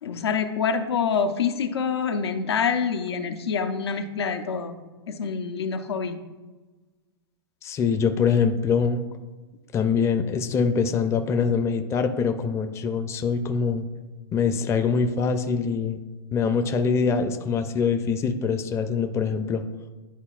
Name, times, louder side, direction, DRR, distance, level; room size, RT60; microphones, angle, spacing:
voice 1, 0.0-4.8 5.1-6.2, left 6 dB, 85° left, 6 dB, 0.7 m, -26 dB
voice 2, 7.6-9.0 9.7-13.9 14.3-16.0 16.3-19.6, left 5 dB, 20° left, 7 dB, 0.5 m, -24 dB
11.0 x 4.0 x 2.4 m, 1.2 s
hypercardioid pair, 120°, 13 cm